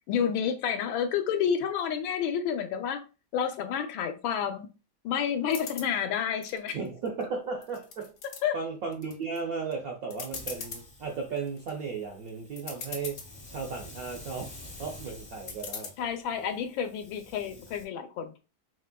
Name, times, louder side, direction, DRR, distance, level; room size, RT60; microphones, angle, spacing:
voice 1, 0.1-3.0 3.3-4.7 5.0-6.8 8.4-8.5 16.0-18.4, left 8 dB, 75° left, 1.4 m, -30 dB
sound 1, 5.5-5.9 6.4-7.2 7.6-8.4 8.9-9.4 9.7-9.8 10.1-10.8 11.4-11.7 12.3-12.4 12.6-13.3 13.8-14.3 15.5-15.9, left 5 dB, 60° left, 0.8 m, -40 dB
voice 2, 6.7-8.2 8.5-14.5 14.8-16.4, right 5 dB, 70° right, 0.8 m, -35 dB
Hiss, 10.3-17.9, left 1 dB, 30° left, 0.7 m, -49 dB
5.2 x 3.2 x 2.2 m
omnidirectional pair, 2.2 m